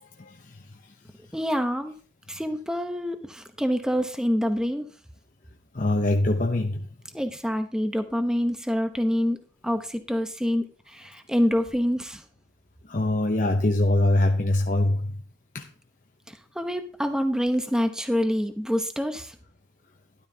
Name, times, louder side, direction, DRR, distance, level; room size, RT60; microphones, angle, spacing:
voice 1, 0.0-0.5 5.7-6.9 12.9-15.1 15.5-15.7, left 1 dB, 45° left, 0.7 m, -23 dB
voice 2, 1.3-1.9 2.3-4.9 7.1-9.4 9.6-10.7 10.9-12.2 16.6-19.3, equal, 5° right, 0.9 m, -26 dB
12.5 x 12.0 x 2.8 m
head